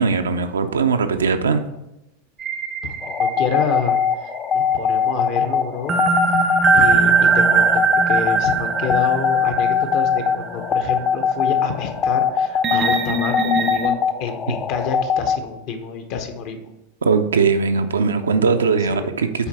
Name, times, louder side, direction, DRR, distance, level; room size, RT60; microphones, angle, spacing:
voice 1, 0.0-1.6 17.0-19.5, right 5 dB, 75° right, 7 dB, 0.5 m, -19 dB
sound 1, 2.4-4.4 5.9-10.7 11.2-11.3 12.6-13.9, right 5 dB, 30° right, 0.6 m, -20 dB
voice 2, 2.8-6.0 6.7-16.6 18.9-19.1 19.4-19.5, left 6 dB, 50° left, 6 dB, 0.9 m, -28 dB
sound 2, 3.0-15.4, left 7 dB, 30° left, 0.4 m, -22 dB
7.0 x 4.5 x 4.3 m, 0.92 s
figure-of-eight pair, 90°, 0 cm